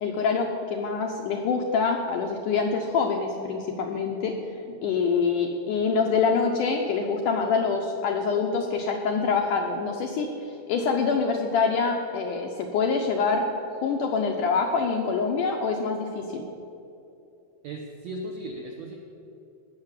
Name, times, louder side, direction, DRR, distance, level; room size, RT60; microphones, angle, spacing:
voice 1, 0.0-4.3 4.8-10.3 10.7-13.5 13.8-16.4, left 5 dB, 75° left, 2 dB, 1.9 m, -25 dB
voice 2, 17.6-19.0, right 1 dB, 75° right, 0 dB, 1.6 m, -36 dB
18.5 x 6.8 x 7.4 m, 2.7 s
omnidirectional pair, 4.5 m